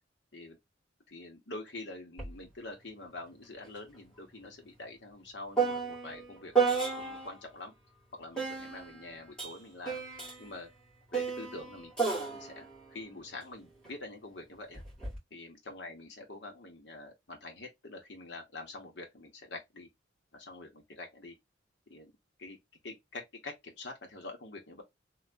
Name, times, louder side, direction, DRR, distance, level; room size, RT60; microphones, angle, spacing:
voice 1, 1.1-7.7 8.1-10.0 10.4-10.7 11.1-14.8 15.3-19.9 20.3-21.4 21.9-22.1 22.4-22.6 22.8-24.8, left 2 dB, 60° left, 1.2 m, -46 dB
sound 1, 2.2-2.3 2.7-7.4 8.3-13.9 14.7-15.2, right 5 dB, 5° left, 2.1 m, -34 dB
3.5 x 2.6 x 2.5 m
head